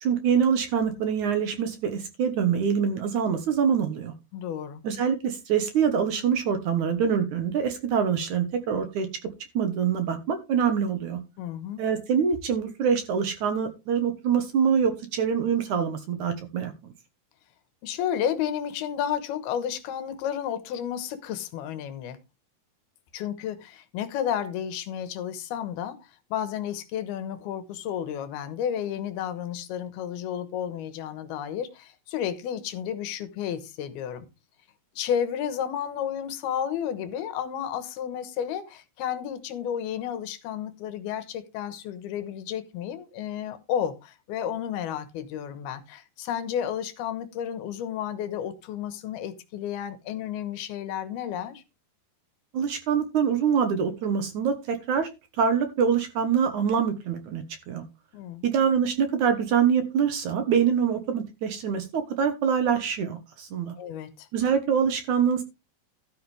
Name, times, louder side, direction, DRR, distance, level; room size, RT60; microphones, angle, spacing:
voice 1, 0.0-4.1 4.8-9.1 9.5-11.2 11.8-16.7 52.5-55.1 55.4-57.8 58.4-63.7 64.3-65.4, right 7 dB, 60° right, 2.3 m, -25 dB
voice 2, 4.3-4.8 11.4-11.8 17.8-22.2 23.1-34.3 35.0-51.6 58.1-58.4 63.8-64.3, left 9 dB, 85° left, 3.1 m, -32 dB
13.0 x 8.7 x 3.3 m
omnidirectional pair, 4.5 m